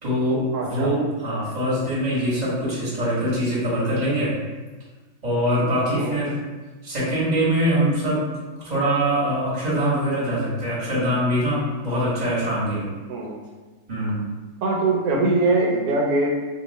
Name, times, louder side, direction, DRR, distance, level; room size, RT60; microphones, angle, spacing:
voice 1, 0.0-4.3 5.2-6.4 6.8-8.2 8.6-12.9 13.9-14.2, equal, 30° right, -8 dB, 1.3 m, -23 dB
voice 2, 0.5-0.9 5.9-6.1 13.1-13.4 14.6-16.3, right 2 dB, 90° right, -1 dB, 1.1 m, -22 dB
2.8 x 2.3 x 3.9 m, 1.2 s
omnidirectional pair, 1.5 m